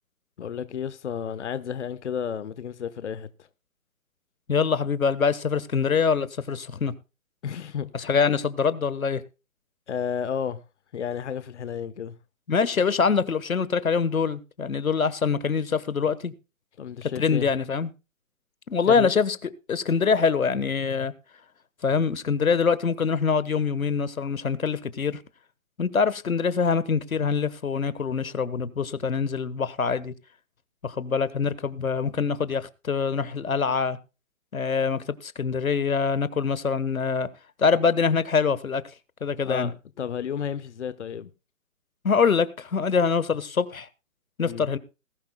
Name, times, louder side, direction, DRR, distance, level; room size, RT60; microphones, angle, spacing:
voice 1, 0.4-3.3 7.4-8.2 9.9-10.6 10.9-12.1 16.8-17.5 18.8-19.1 39.4-41.3 44.4-44.6, left 8 dB, 60° left, 1.1 m, -32 dB
voice 2, 4.5-6.9 7.9-9.2 12.5-16.3 17.2-17.9 18.7-21.1 21.8-25.2 25.8-30.1 30.8-34.0 34.5-37.3 37.6-38.8 39.2-39.7 42.0-43.9 44.4-44.8, left 5 dB, 85° left, 1.4 m, -24 dB
20.0 x 12.0 x 2.2 m
hypercardioid pair, 145°, 41 cm